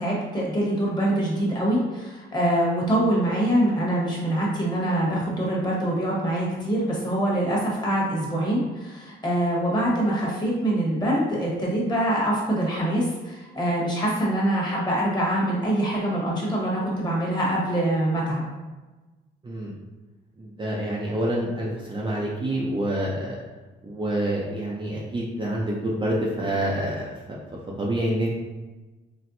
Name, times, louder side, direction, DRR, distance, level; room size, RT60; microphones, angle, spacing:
voice 1, 0.0-18.4, right 1 dB, 20° left, -5 dB, 1.2 m, -24 dB
voice 2, 20.4-23.4 23.8-27.4 27.8-28.3, right 1 dB, 25° right, -4 dB, 0.5 m, -27 dB
4.2 x 2.1 x 2.6 m, 1.2 s
cardioid pair, 90°, 20 cm